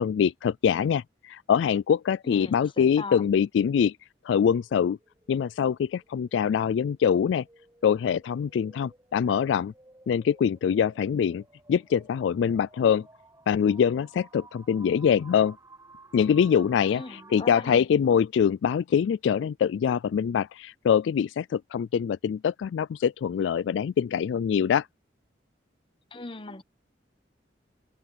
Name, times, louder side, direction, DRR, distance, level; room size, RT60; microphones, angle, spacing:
voice 1, 0.0-3.9 4.3-5.0 5.3-7.4 7.8-9.7 10.1-11.4 11.7-13.1 13.5-15.6 16.1-24.9, left 7 dB, 80° left, 0.3 m, -24 dB
voice 2, 2.2-3.2 16.9-17.9 26.1-26.6, left 3 dB, 30° left, 1.1 m, -39 dB
sound 1, 4.6-17.7, right 3 dB, 20° right, 6.2 m, -55 dB
head